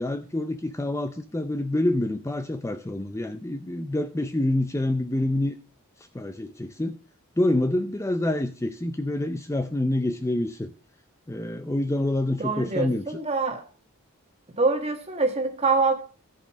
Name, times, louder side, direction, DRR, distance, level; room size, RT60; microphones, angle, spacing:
voice 1, 0.0-5.6 6.0-7.0 7.4-10.7 11.3-13.2, left 1 dB, 15° left, 0.4 m, -27 dB
voice 2, 12.4-13.6 14.5-16.0, right 3 dB, 30° right, 1.5 m, -25 dB
14.0 x 5.3 x 6.0 m
head